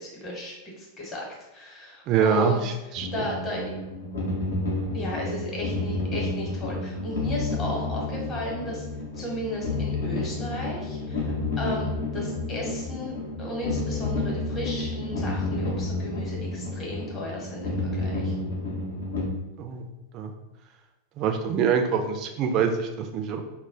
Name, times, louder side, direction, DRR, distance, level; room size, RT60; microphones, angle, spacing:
voice 1, 0.0-2.6 3.1-3.6 4.9-8.8 9.2-13.1 13.4-18.3, left 1 dB, 25° left, -2 dB, 0.9 m, -35 dB
voice 2, 2.1-3.1 19.6-19.9 20.1-20.3 21.2-23.4, right 6 dB, 35° right, 5 dB, 0.3 m, -25 dB
sound 1, 2.9-19.3, left 2 dB, 65° left, 0.6 m, -30 dB
2.1 x 2.0 x 3.6 m, 1.0 s
figure-of-eight pair, 90°, 0 cm